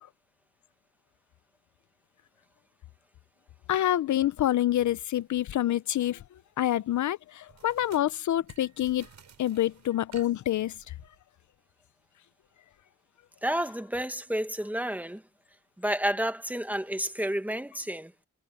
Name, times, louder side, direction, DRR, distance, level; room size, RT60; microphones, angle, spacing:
voice 1, 3.7-6.2 6.6-9.1 9.4-10.8, left 12 dB, 75° left, 0.5 m, -27 dB
sound 1, 5.4-5.6 7.5-11.2, right 7 dB, 65° right, 6.4 m, -55 dB
voice 2, 13.4-15.2 15.8-18.1, equal, 5° right, 1.2 m, -30 dB
wide cardioid pair, 175°, 30 cm